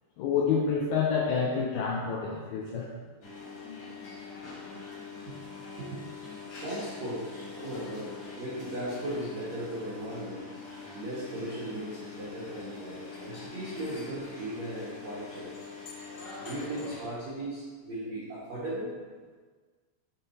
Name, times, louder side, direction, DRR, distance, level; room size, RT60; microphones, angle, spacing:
voice 1, 0.2-2.9, left 6 dB, 85° left, -2 dB, 2.3 m, -28 dB
sound 1, 3.2-17.0, left 4 dB, 65° left, 1.6 m, -44 dB
voice 2, 5.8-6.1 6.6-10.5 10.9-15.5 16.4-19.0, right 1 dB, 85° right, -9 dB, 1.5 m, -37 dB
7.4 x 3.7 x 4.1 m, 1.5 s
omnidirectional pair, 5.1 m